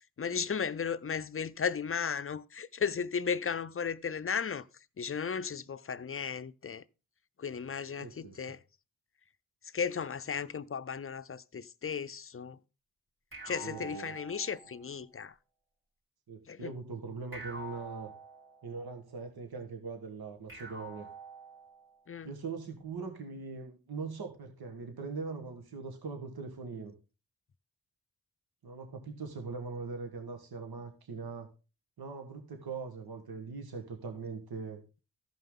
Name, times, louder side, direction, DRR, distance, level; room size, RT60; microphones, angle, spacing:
voice 1, 0.2-4.6 5.0-6.8 7.4-8.6 9.7-12.6 13.4-15.3 16.5-16.7 22.1-22.3, left 6 dB, 35° left, 0.6 m, -35 dB
voice 2, 8.0-8.5 13.5-14.2 16.3-18.1 18.6-21.1 22.2-26.9 28.6-31.5 32.0-34.8, right 4 dB, 70° right, 1.6 m, -41 dB
sound 1, 13.3-14.9 17.3-18.9 20.5-22.0, right 2 dB, 30° right, 3.1 m, -47 dB
14.0 x 5.5 x 3.8 m
cardioid pair, 50°, 38 cm